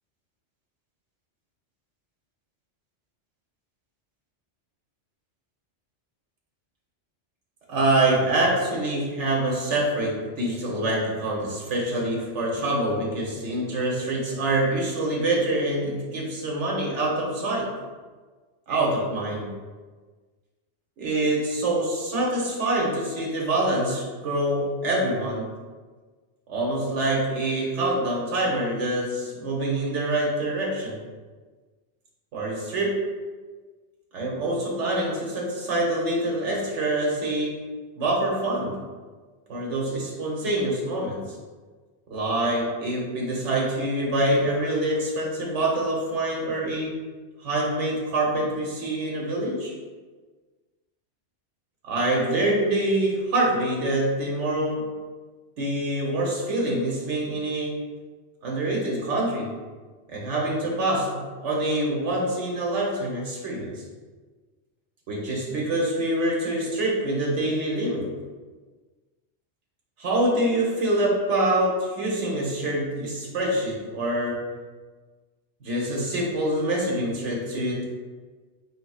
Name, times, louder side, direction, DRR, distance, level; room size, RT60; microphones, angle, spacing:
voice 1, 7.7-17.7 18.7-19.5 21.0-25.5 26.5-31.0 32.3-33.0 34.1-37.6 38.0-38.8 39.5-41.2 42.1-47.0 47.4-49.7 51.8-54.9 55.6-57.7 58.4-59.5 60.1-63.7 65.1-68.1 70.0-74.4 75.6-77.8, right 1 dB, 90° right, -3 dB, 1.2 m, -25 dB
4.1 x 4.1 x 2.3 m, 1.4 s
omnidirectional pair, 1.2 m